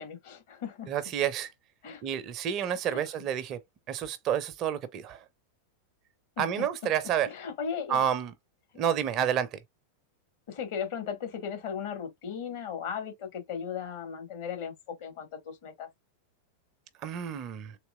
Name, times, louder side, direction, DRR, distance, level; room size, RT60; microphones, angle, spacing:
voice 1, 0.0-0.9 1.8-2.0 2.9-3.0 6.4-6.9 7.2-8.0 10.5-15.9, left 7 dB, 50° left, 1.4 m, -37 dB
voice 2, 0.9-1.5 2.0-3.6 3.9-5.2 6.4-7.3 7.9-8.3 8.8-9.6 17.0-17.8, right 9 dB, 35° right, 0.5 m, -29 dB
3.6 x 2.8 x 2.2 m
figure-of-eight pair, 90°, 0 cm